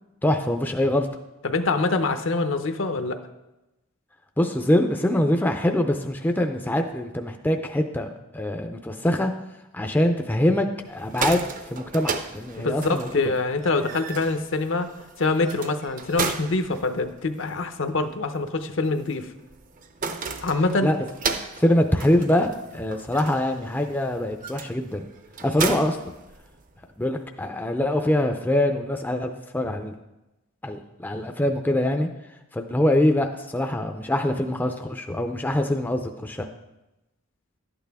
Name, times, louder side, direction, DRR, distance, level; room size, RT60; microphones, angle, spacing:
voice 1, 0.2-1.1 4.4-8.1 8.3-9.3 9.7-13.1 20.8-21.0 21.6-25.0 25.4-26.0 27.0-29.9 30.6-32.1 32.5-36.5, left 1 dB, 10° left, 4 dB, 0.4 m, -24 dB
voice 2, 1.4-3.2 12.6-14.9 15.2-19.3 20.4-20.9, left 3 dB, 60° left, 8 dB, 0.7 m, -25 dB
sound 1, 10.9-26.9, right 5 dB, 40° right, 0.6 m, -35 dB
11.5 x 8.9 x 3.5 m, 0.98 s
head